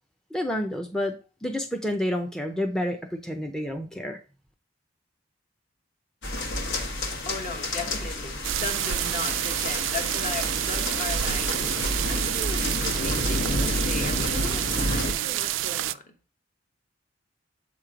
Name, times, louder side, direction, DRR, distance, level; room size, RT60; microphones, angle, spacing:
voice 1, 0.3-1.1 1.4-4.2, left 1 dB, 5° left, 0.5 m, -29 dB
sound 1, 6.2-15.1, left 1 dB, 65° left, 1.2 m, -30 dB
voice 2, 7.2-11.8 12.1-16.1, left 3 dB, 40° left, 1.0 m, -37 dB
sound 2, 8.4-15.9, right 13 dB, 70° right, 0.3 m, -28 dB
7.5 x 3.0 x 4.9 m
head